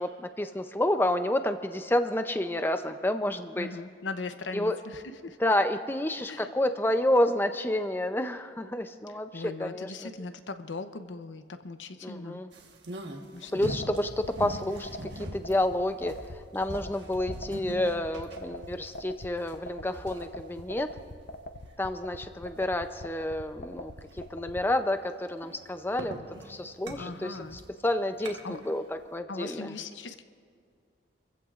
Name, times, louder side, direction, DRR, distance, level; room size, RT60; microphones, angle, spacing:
voice 1, 0.0-3.7 4.5-4.8 5.4-10.1 12.0-12.5 13.5-16.2 16.5-20.9 21.8-23.9 24.3-26.2 26.5-27.4 27.8-29.7, left 1 dB, 10° left, 8 dB, 0.5 m, -29 dB
voice 2, 3.6-5.4 6.2-6.5 9.3-12.4 13.3-13.9 27.0-27.6 28.4-28.6 29.3-30.2, left 3 dB, 85° left, 9 dB, 0.8 m, -39 dB
sound 1, 12.5-21.8 22.2-22.3 22.8-22.9 23.3-23.5 23.9-24.2 24.7-28.7 29.0-29.1, right 1 dB, 75° right, 1.4 m, -42 dB
sound 2, 13.7-24.6, left 1 dB, 55° left, 0.7 m, -42 dB
28.5 x 15.0 x 2.5 m, 2.2 s
head